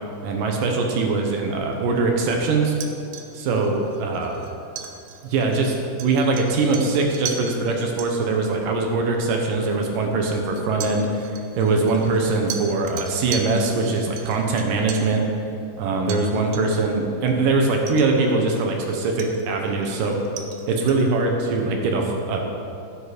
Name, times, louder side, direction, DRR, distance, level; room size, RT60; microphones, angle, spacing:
voice 1, 0.2-2.8 3.3-4.4 5.2-15.2 15.8-20.2 20.7-22.5, right 3 dB, 70° right, 2 dB, 2.1 m, -22 dB
sound 1, 2.7-7.6 8.0-8.1 9.1-9.2 10.6-15.2 16.1-16.3 16.5-16.9 17.3-17.4 17.9-18.8 19.2-21.1, right 8 dB, 90° right, 3.2 m, -37 dB
14.5 x 8.2 x 5.0 m, 2.6 s
omnidirectional pair, 5.1 m